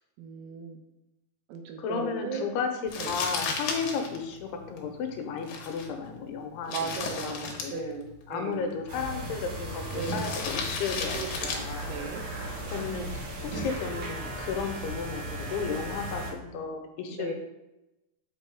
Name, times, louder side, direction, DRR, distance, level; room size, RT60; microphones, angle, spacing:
voice 1, 0.2-0.8 1.5-2.5 3.0-3.2 6.7-8.7 9.9-10.3 11.1-12.2 17.1-17.3, right 5 dB, 80° right, 3 dB, 2.7 m, -37 dB
voice 2, 1.8-6.9 7.2-8.0 8.3-11.2 11.5-12.0 12.7-17.3, left 5 dB, 90° left, 4 dB, 2.7 m, -34 dB
Crumpling crinkling, 2.9-13.0, left 5 dB, 70° left, 2.2 m, -37 dB
sound 1, 8.9-16.3, right 1 dB, 55° right, 2.7 m, -36 dB
6.7 x 5.1 x 3.4 m, 0.97 s
omnidirectional pair, 4.7 m